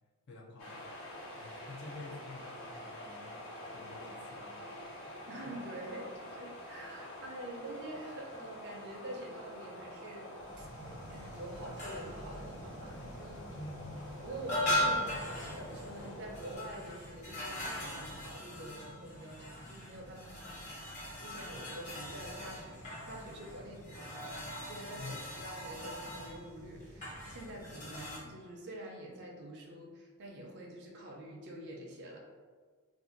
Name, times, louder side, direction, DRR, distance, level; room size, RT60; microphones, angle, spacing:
voice 1, 0.3-0.9 1.4-5.2 13.5-14.0 25.0-25.3, left 2 dB, 55° left, -2 dB, 0.5 m, -49 dB
sound 1, 0.6-16.6, left 1 dB, 70° left, 1.0 m, -47 dB
voice 2, 5.3-10.3 10.6-13.5 14.2-22.8 23.1-24.2 24.6-25.2 25.4-32.2, right 1 dB, 50° right, -2 dB, 0.5 m, -46 dB
sound 2, 10.4-28.2, left 1 dB, 35° left, 0.9 m, -40 dB
2.5 x 2.5 x 3.7 m, 1.6 s
head